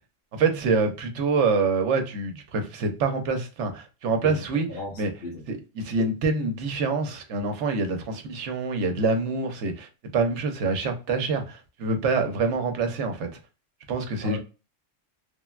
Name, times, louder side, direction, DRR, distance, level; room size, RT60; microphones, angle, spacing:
voice 1, 0.3-4.7 5.0-5.1 5.5-9.9 10.1-13.4 13.9-14.4, right 4 dB, 70° right, 0.9 m, -26 dB
voice 2, 4.2-5.4 14.2-14.4, left 2 dB, 55° left, 1.0 m, -36 dB
3.3 x 2.2 x 2.2 m
omnidirectional pair, 1.3 m